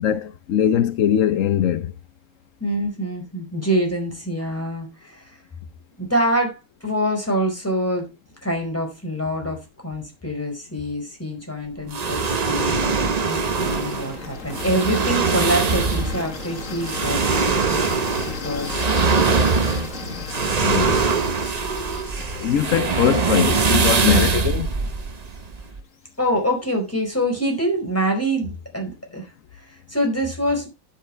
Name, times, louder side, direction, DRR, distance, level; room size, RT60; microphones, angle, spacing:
voice 1, 0.0-1.9 20.6-21.2 22.3-24.7, left 10 dB, 80° left, 0.7 m, -21 dB
voice 2, 2.6-5.4 6.0-8.1 8.4-18.0 18.4-18.9 19.8-20.1 22.8-23.0 24.0-24.3 26.2-30.7, equal, 5° left, 4.6 m, -25 dB
sound 1, 11.9-25.8, right 4 dB, 75° right, 0.3 m, -22 dB
sound 2, 13.0-24.9, left 4 dB, 40° left, 1.9 m, -35 dB
12.0 x 8.1 x 3.3 m
omnidirectional pair, 2.2 m